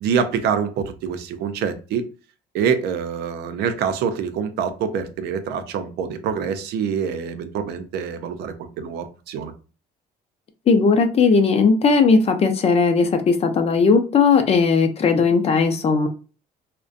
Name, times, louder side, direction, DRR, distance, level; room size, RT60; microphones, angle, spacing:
voice 1, 0.0-2.1 2.5-9.5, right 7 dB, 75° right, 0.5 m, -25 dB
voice 2, 10.7-16.1, left 4 dB, 40° left, 0.4 m, -17 dB
2.4 x 2.1 x 2.4 m
cardioid pair, 110°, 17 cm